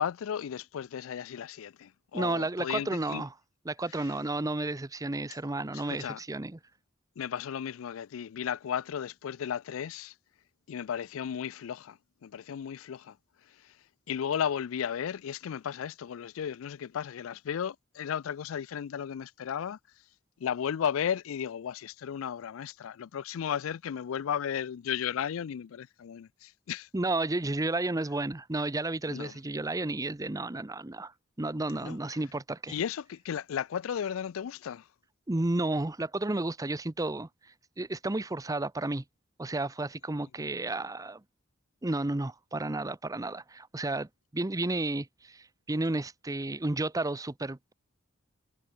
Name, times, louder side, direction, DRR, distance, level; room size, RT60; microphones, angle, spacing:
voice 1, 0.0-3.2 5.9-6.2 7.2-10.1 10.7-13.2 14.1-19.8 20.4-26.9 29.1-29.3 31.8-32.0 32.7-34.8, left 8 dB, 80° left, 0.4 m, -34 dB
voice 2, 2.1-3.3 3.7-6.6 26.9-31.1 31.4-32.7 35.3-37.3 37.8-39.0 39.4-41.2 41.8-47.7, right 2 dB, 15° right, 0.7 m, -32 dB
head